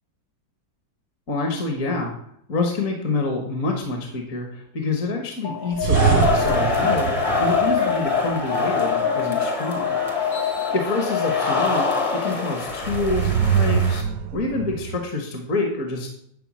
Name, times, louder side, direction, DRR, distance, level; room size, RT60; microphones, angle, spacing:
voice 1, 1.3-2.1 2.5-10.0 10.7-14.0 14.3-16.1, left 3 dB, 50° left, 2 dB, 1.5 m, -27 dB
Alarm, 5.4-12.5, left 8 dB, 80° left, 1.9 m, -27 dB
sound 1, 5.8-8.2 12.7-15.0, right 8 dB, 75° right, 0.8 m, -23 dB
sound 2, 5.9-14.0, left 3 dB, 25° left, 0.8 m, -25 dB
10.5 x 4.6 x 6.1 m, 0.72 s
omnidirectional pair, 2.0 m